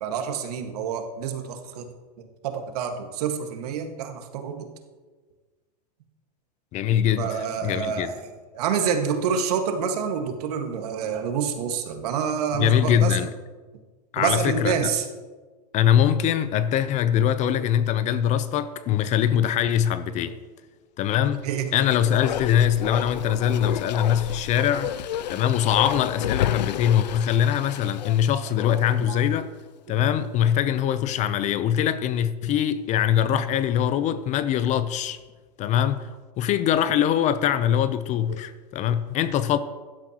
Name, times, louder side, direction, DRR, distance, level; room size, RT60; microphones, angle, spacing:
voice 1, 0.0-1.9 2.2-4.7 7.2-8.2 8.5-13.2 14.2-15.1 20.3-20.4 21.4-21.8 29.1-29.2 38.3-38.4, right 7 dB, 65° right, 1.8 m, -27 dB
voice 2, 6.7-7.3 7.6-8.1 12.5-13.3 14.1-14.7 15.7-20.4 21.0-21.5 21.7-24.9 25.3-29.5 29.9-35.2 35.6-36.1 36.4-39.6, left 10 dB, 35° left, 0.7 m, -22 dB
Bark, 21.5-29.1 29.4-29.5, left 10 dB, 90° left, 0.5 m, -31 dB
16.0 x 12.0 x 3.0 m
hypercardioid pair, 120°, 21 cm